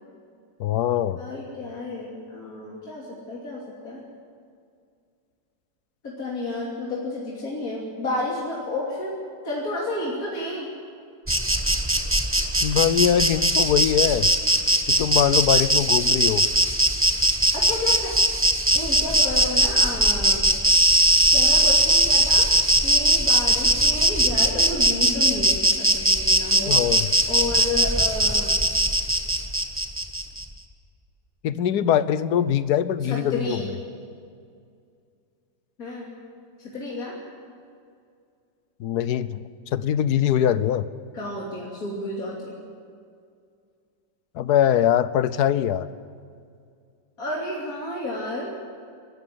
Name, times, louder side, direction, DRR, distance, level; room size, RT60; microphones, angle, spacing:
voice 1, 0.6-1.2 12.6-14.3 14.9-16.5 26.7-27.1 31.4-33.6 38.8-39.4 39.7-40.9 44.3-45.9, left 10 dB, 70° left, 15 dB, 1.3 m, -22 dB
voice 2, 1.1-4.0 6.0-9.2 9.4-10.7 17.6-18.2 18.7-20.5 21.3-26.8 27.3-28.6 33.0-33.7 35.8-36.1 36.6-37.1 41.1-42.6 47.2-48.5, left 2 dB, 55° left, -4 dB, 3.4 m, -31 dB
Insect, 11.3-30.4, right 1 dB, 10° right, 1.0 m, -20 dB
23.5 x 13.0 x 9.5 m, 2.3 s
omnidirectional pair, 1.8 m